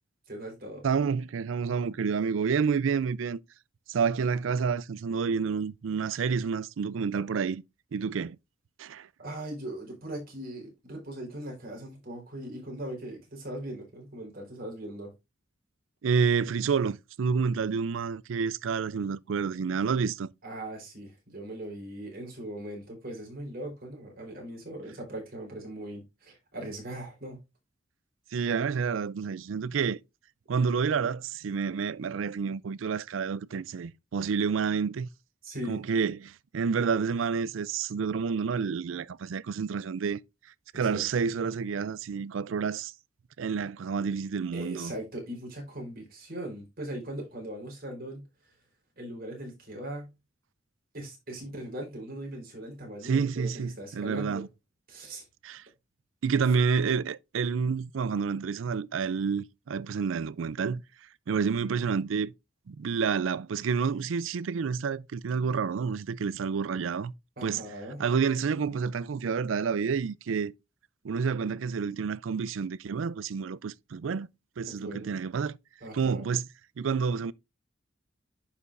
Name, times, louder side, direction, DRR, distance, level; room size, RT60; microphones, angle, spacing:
voice 1, 0.3-0.8 9.2-15.1 20.4-27.4 35.4-35.8 40.7-41.0 44.5-48.3 49.0-50.1 50.9-54.4 54.9-55.2 56.4-56.5 67.4-68.0 74.7-75.1 75.8-76.3, right 1 dB, 50° right, 3.9 m, -39 dB
voice 2, 0.8-3.4 3.9-7.6 7.9-8.4 8.8-9.1 16.0-20.3 28.3-30.0 30.5-35.1 35.7-40.2 40.7-42.9 43.4-44.9 53.0-54.5 55.4-55.6 56.2-60.8 61.3-62.3 62.7-67.1 67.4-67.6 68.0-70.5 71.0-74.3 74.6-75.6 75.9-76.5 76.8-77.3, right 6 dB, 85° right, 0.4 m, -29 dB
11.0 x 5.4 x 2.5 m
head